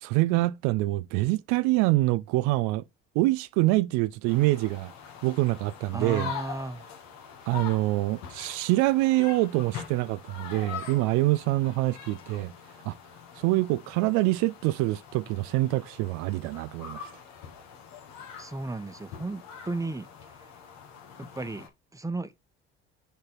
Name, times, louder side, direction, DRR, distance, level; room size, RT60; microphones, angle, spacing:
voice 1, 0.0-2.8 3.2-4.9 5.2-6.3 7.5-12.5 12.9-13.0 13.4-17.1, right 19 dB, 65° right, 0.5 m, -25 dB
sound 1, 4.3-21.7, left 7 dB, 65° left, 1.8 m, -43 dB
voice 2, 5.9-6.8 18.4-20.5 21.2-22.4, right 2 dB, 10° right, 1.1 m, -35 dB
6.7 x 4.4 x 4.4 m
hypercardioid pair, 60°, 31 cm